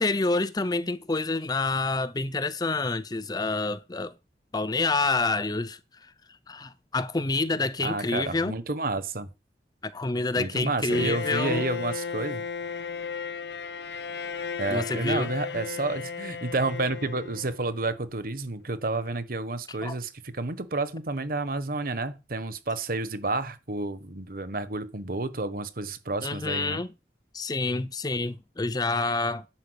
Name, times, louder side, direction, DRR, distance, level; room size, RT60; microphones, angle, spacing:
voice 1, 0.0-4.1 4.5-5.8 6.5-8.5 9.8-11.6 14.7-15.3 19.8-19.9 26.2-26.9 27.3-29.5, left 3 dB, 20° left, 0.6 m, -28 dB
voice 2, 7.8-9.3 10.4-12.4 14.6-26.8, right 2 dB, 55° right, 1.2 m, -30 dB
Bowed string instrument, 10.9-17.8, left 5 dB, 70° left, 0.8 m, -35 dB
10.5 x 5.5 x 8.1 m
head